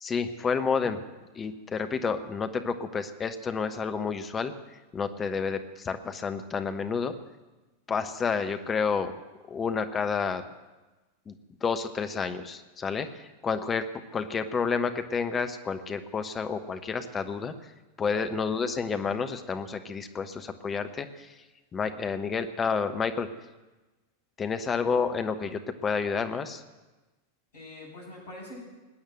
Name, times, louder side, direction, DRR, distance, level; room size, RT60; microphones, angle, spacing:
voice 1, 0.0-1.0 1.3-4.5 4.9-7.1 7.9-9.1 9.5-10.4 11.3-11.4 11.6-13.8 14.1-17.5 18.0-21.4 21.7-23.3 24.4-26.6, left 5 dB, 20° left, 8 dB, 1.1 m, -30 dB
voice 2, 27.5-28.6, left 1 dB, 55° left, -6 dB, 7.4 m, -44 dB
20.0 x 8.7 x 7.8 m, 1.1 s
figure-of-eight pair, 90°, 0 cm